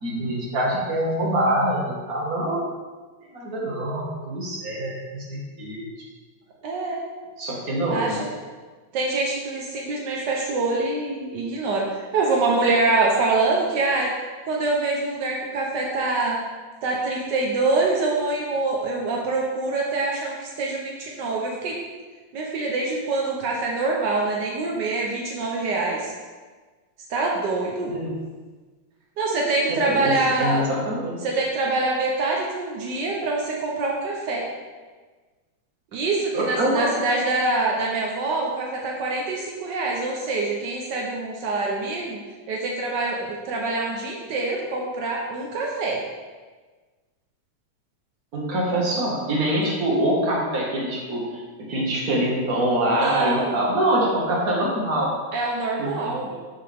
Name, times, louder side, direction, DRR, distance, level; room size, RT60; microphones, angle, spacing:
voice 1, 0.0-2.6 3.3-5.9 7.4-8.2 27.9-28.1 29.7-31.2 36.3-36.9 48.3-55.1 55.8-56.4, right 1 dB, 35° right, -4 dB, 1.8 m, -25 dB
voice 2, 6.6-7.0 7.9-8.3 8.9-14.1 14.5-16.4 16.8-21.8 22.3-26.1 27.1-27.9 29.2-30.7 31.2-34.5 35.9-42.2 42.5-46.0 52.9-53.6 55.3-56.3, right 3 dB, 75° right, -1 dB, 1.0 m, -25 dB
13.0 x 5.3 x 3.6 m, 1.4 s
omnidirectional pair, 3.3 m